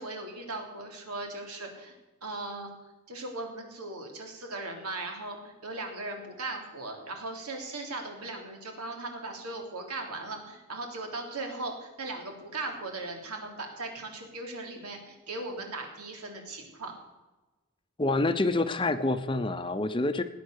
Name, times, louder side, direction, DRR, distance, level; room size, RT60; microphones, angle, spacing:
voice 1, 0.0-1.9 2.2-2.7 3.1-16.9, right 2 dB, 90° right, 2 dB, 3.4 m, -38 dB
voice 2, 18.0-20.2, left 2 dB, 20° left, 9 dB, 0.7 m, -27 dB
19.5 x 9.3 x 6.6 m, 1.1 s
head